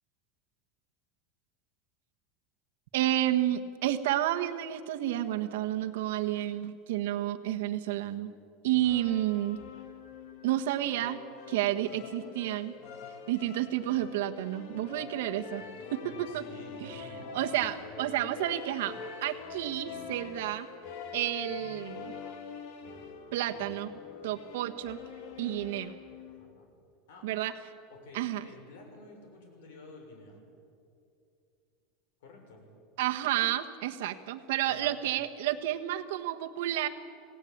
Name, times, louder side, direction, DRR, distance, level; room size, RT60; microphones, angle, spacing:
voice 1, 2.9-8.3 8.6-9.6 10.4-11.2 11.5-12.7 13.3-15.6 15.9-16.4 16.8-17.1 17.3-18.9 19.2-20.7 21.1-22.1 23.3-23.9 24.2-25.0 25.4-25.9 27.2-27.5 28.1-28.5 33.0-36.9, right 13 dB, 80° right, 7 dB, 1.4 m, -30 dB
voice 2, 8.7-9.0 16.0-17.6 26.3-26.7 27.1-27.3 27.9-30.4 32.2-32.6 34.7-35.0, left 2 dB, 90° left, 3 dB, 6.6 m, -51 dB
sound 1, 8.8-26.5, left 5 dB, 50° left, 2.0 m, -45 dB
27.5 x 18.0 x 8.7 m, 2.5 s
supercardioid pair, 180°, 0 cm